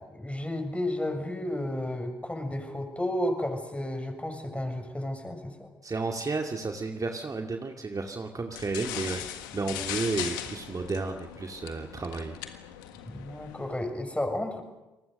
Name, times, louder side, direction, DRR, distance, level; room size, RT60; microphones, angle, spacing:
voice 1, 0.0-5.7 13.0-14.6, left 1 dB, 10° left, 5 dB, 6.7 m, -32 dB
voice 2, 5.8-12.6, right 3 dB, 35° right, 4 dB, 2.3 m, -32 dB
sound 1, 8.5-13.8, left 11 dB, 85° left, 1.7 m, -39 dB
29.5 x 20.0 x 6.6 m, 1.0 s
hypercardioid pair, 45°, 11 cm